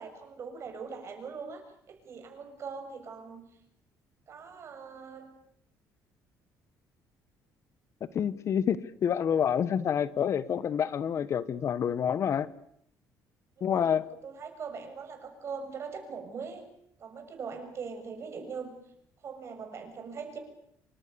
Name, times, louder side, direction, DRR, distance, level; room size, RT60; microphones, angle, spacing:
voice 1, 0.0-3.5 4.3-5.4 13.6-13.9 14.2-16.6 17.0-18.7 19.2-20.4, right 5 dB, 40° right, 6 dB, 6.9 m, -41 dB
voice 2, 8.1-12.5 13.6-14.1, left 8 dB, 45° left, 16 dB, 1.1 m, -28 dB
27.5 x 25.0 x 6.9 m, 0.71 s
cardioid pair, 135°, 7 cm